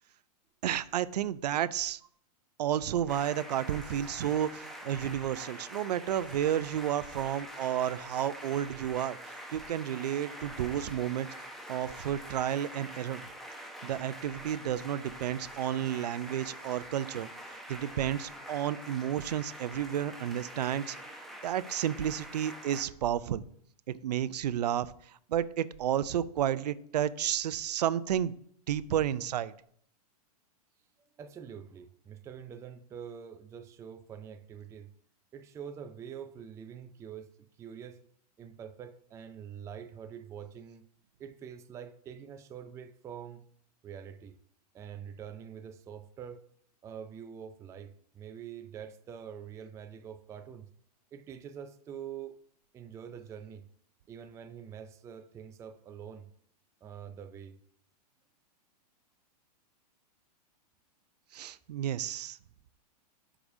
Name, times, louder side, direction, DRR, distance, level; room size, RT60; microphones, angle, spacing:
voice 1, 0.6-2.0 2.6-13.2 13.8-23.5 23.9-28.3 28.7-29.5 61.3-62.4, right 10 dB, 80° right, 0.5 m, -32 dB
sound 1, 3.1-22.8, equal, ahead, 0.9 m, -45 dB
voice 2, 31.1-34.9 35.3-37.3 37.6-38.0 38.4-40.9 41.2-43.4 43.8-44.4 44.7-46.4 46.8-50.7 51.1-52.4 52.7-53.7 54.1-56.3 56.8-57.6, right 8 dB, 15° right, 0.4 m, -45 dB
11.5 x 5.0 x 2.7 m
hypercardioid pair, 125°, 21 cm